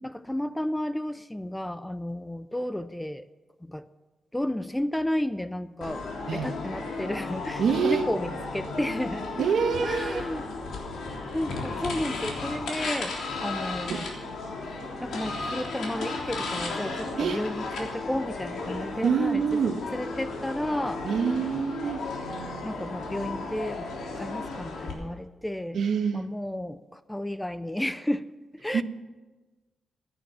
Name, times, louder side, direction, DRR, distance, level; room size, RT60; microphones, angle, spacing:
voice 1, 0.0-3.3 3.6-3.8 4.3-6.1 6.3-9.3 9.8-10.6 11.3-14.1 15.0-19.6 19.9-21.1 22.6-23.9 24.1-25.8 26.1-28.8, left 1 dB, 5° left, 13 dB, 0.4 m, -32 dB
sound 1, 5.8-24.9, left 3 dB, 85° left, 3.4 m, -34 dB
voice 2, 7.6-8.0 9.4-10.2 13.9-14.0 17.2-17.4 19.0-19.8 21.0-22.0 25.7-26.3 28.7-28.8, right 6 dB, 65° right, 7 dB, 1.2 m, -26 dB
15.5 x 10.0 x 7.1 m, 1.2 s
wide cardioid pair, 170°, 0 cm